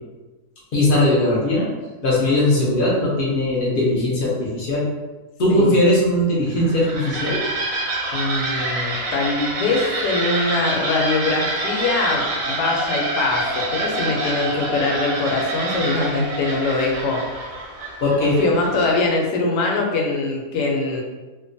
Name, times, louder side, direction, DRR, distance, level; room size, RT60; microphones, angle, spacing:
voice 1, 0.7-1.7 2.0-4.9 5.4-7.4 18.0-18.4, left 1 dB, 65° left, -5 dB, 0.5 m, -19 dB
sound 1, 6.5-19.0, right 2 dB, 65° right, 0.9 m, -27 dB
voice 2, 8.1-17.2 18.2-21.0, left 3 dB, 85° left, 0 dB, 1.2 m, -22 dB
2.8 x 2.2 x 2.5 m, 1.2 s
omnidirectional pair, 1.7 m